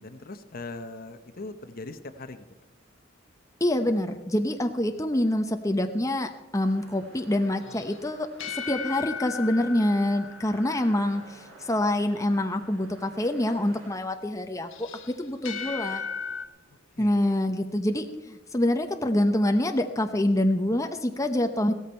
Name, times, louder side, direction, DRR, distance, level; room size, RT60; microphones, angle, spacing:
voice 1, 0.0-2.5 16.7-17.3, left 2 dB, 50° left, 10 dB, 0.9 m, -41 dB
voice 2, 3.6-8.3 8.5-14.9 15.2-16.0 17.0-21.7, left 1 dB, 15° left, 6 dB, 0.9 m, -26 dB
sound 1, 6.6-13.9, right 1 dB, 80° right, 4.0 m, -51 dB
sound 2, 7.6-11.1 14.7-16.5, left 6 dB, 70° left, 1.3 m, -37 dB
16.0 x 14.0 x 4.4 m, 1.0 s
head